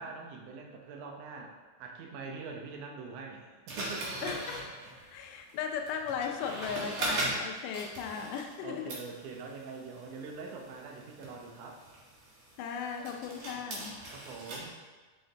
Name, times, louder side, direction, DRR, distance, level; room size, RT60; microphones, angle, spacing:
voice 1, 0.0-4.3 8.6-11.8 14.1-14.9, right 4 dB, 80° right, 1 dB, 2.3 m, -44 dB
sound 1, 3.7-8.6 8.9-14.6, right 2 dB, 60° right, 2.6 m, -40 dB
voice 2, 4.2-4.6 5.1-8.9 12.6-14.0, left 7 dB, 85° left, 3 dB, 2.2 m, -37 dB
6.4 x 5.1 x 3.9 m, 1.3 s
omnidirectional pair, 3.7 m